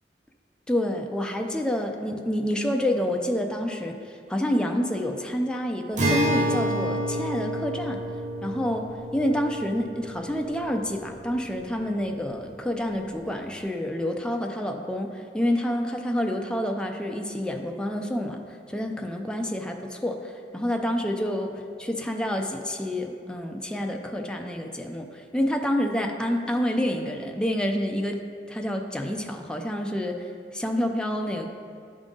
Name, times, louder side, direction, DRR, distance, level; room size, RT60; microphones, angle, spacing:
voice 1, 0.7-4.0 4.3-8.0 8.4-18.4 18.7-20.2 20.5-21.5 21.8-25.1 25.3-28.2 28.5-30.3 30.5-31.5, equal, 5° left, 3 dB, 0.4 m, -28 dB
Acoustic guitar, 6.0-11.4, right 1 dB, 45° right, 0.9 m, -29 dB
10.5 x 3.7 x 3.8 m, 2.3 s
head